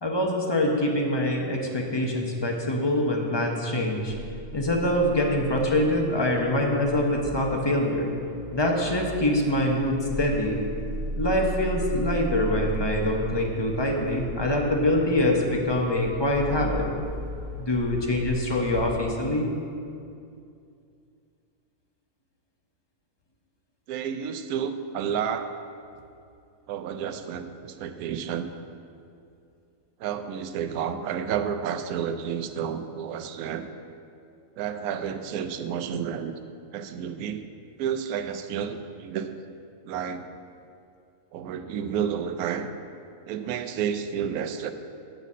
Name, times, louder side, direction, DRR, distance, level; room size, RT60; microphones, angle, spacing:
voice 1, 0.0-4.1 4.5-8.1 8.5-10.6 11.2-16.9 17.6-19.5, left 1 dB, 25° left, 0 dB, 0.7 m, -24 dB
sound 1, 4.1-18.9, right 1 dB, 65° right, 1.3 m, -36 dB
voice 2, 23.9-25.5 26.7-28.5 30.0-33.7 34.6-36.3 36.7-37.5 37.8-39.4 39.9-40.3 41.3-42.7 43.3-44.7, right 8 dB, 85° right, 9 dB, 1.0 m, -30 dB
9.1 x 4.1 x 7.3 m, 2.5 s
omnidirectional pair, 1.5 m